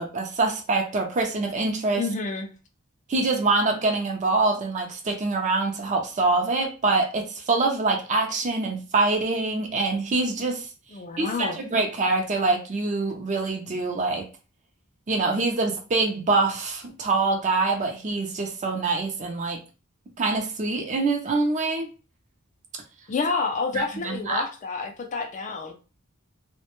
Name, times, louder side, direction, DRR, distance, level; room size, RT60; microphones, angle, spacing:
voice 1, 0.0-2.0 3.1-10.7 11.2-14.2 15.1-19.6 20.2-21.9 23.7-24.4, right 3 dB, 35° right, 0.4 m, -25 dB
voice 2, 2.0-2.5 10.9-11.6 23.1-25.7, left 4 dB, 35° left, 0.4 m, -29 dB
2.1 x 2.0 x 2.9 m
head